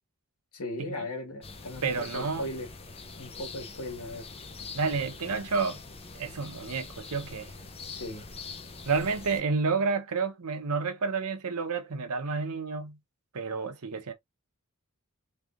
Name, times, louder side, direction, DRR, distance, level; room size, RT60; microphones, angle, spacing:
voice 1, 0.5-2.7 3.2-4.3 7.9-8.2, left 1 dB, 80° left, 1.5 m, -37 dB
sound 1, 1.4-9.4, left 4 dB, 25° left, 0.5 m, -44 dB
voice 2, 1.8-2.5 4.7-5.8 6.1-7.5 8.9-13.0 13.3-14.1, right 4 dB, 85° right, 0.9 m, -30 dB
3.6 x 3.3 x 2.4 m
head